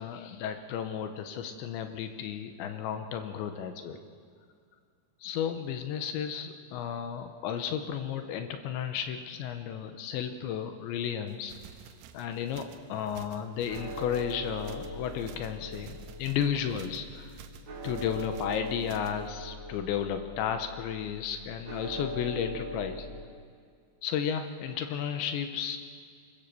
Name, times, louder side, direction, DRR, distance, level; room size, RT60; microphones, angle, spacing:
voice 1, 0.0-4.0 5.2-11.5 12.1-17.3 17.8-23.1 24.0-25.8, left 8 dB, 75° left, 8 dB, 3.1 m, -33 dB
sound 1, 11.3-19.3, right 9 dB, 85° right, 3.5 m, -52 dB
sound 2, 13.7-23.2, equal, 60° right, 1.2 m, -41 dB
25.0 x 22.0 x 6.9 m, 2.2 s
omnidirectional pair, 5.7 m